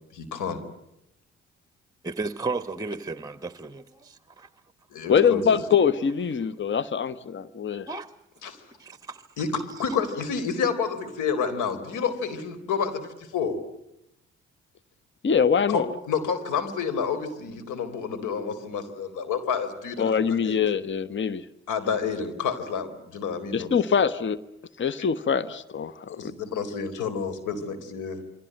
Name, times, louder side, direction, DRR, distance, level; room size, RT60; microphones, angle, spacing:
voice 1, 0.1-0.6 4.9-5.4 8.4-8.6 9.4-13.6 15.7-20.6 21.7-23.7 25.0-25.1 26.1-28.2, left 6 dB, 65° left, 4.0 m, -29 dB
voice 2, 2.0-4.5 7.9-8.1 8.8-9.3 9.7-9.9, right 3 dB, 10° right, 1.3 m, -34 dB
voice 3, 5.1-7.9 15.2-15.9 20.0-21.4 23.5-24.4 24.8-26.3, left 7 dB, 35° left, 1.3 m, -24 dB
28.5 x 24.0 x 7.9 m
figure-of-eight pair, 45°, 34 cm